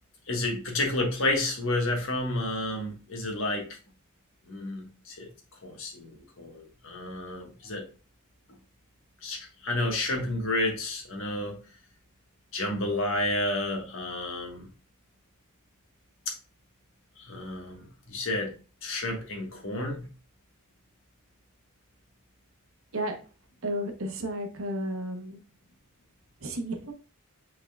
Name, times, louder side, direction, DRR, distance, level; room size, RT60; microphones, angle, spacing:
voice 1, 0.3-3.7 4.5-5.3 5.6-7.8 9.2-11.6 12.5-14.7 16.3-16.4 17.2-18.5 18.8-20.1, left 1 dB, 65° left, 1.3 m, -30 dB
voice 2, 23.6-25.4 26.4-26.9, right 1 dB, 65° right, 0.8 m, -32 dB
5.9 x 3.7 x 2.3 m
head